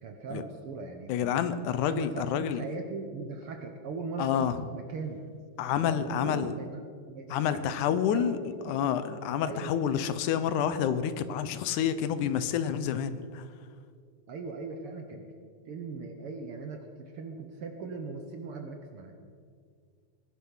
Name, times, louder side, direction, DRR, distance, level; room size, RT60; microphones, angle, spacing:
voice 1, 0.0-1.3 1.7-5.2 5.7-6.8 7.1-7.6 7.9-8.3 8.6-8.8 9.4-9.7 14.3-15.3 15.7-19.2, right 4 dB, 60° right, 4 dB, 1.6 m, -39 dB
voice 2, 1.1-2.6 4.2-4.6 5.6-6.5 7.3-8.4 8.7-13.5, left 9 dB, 80° left, 12 dB, 2.2 m, -28 dB
20.0 x 11.5 x 5.6 m, 2.1 s
omnidirectional pair, 3.5 m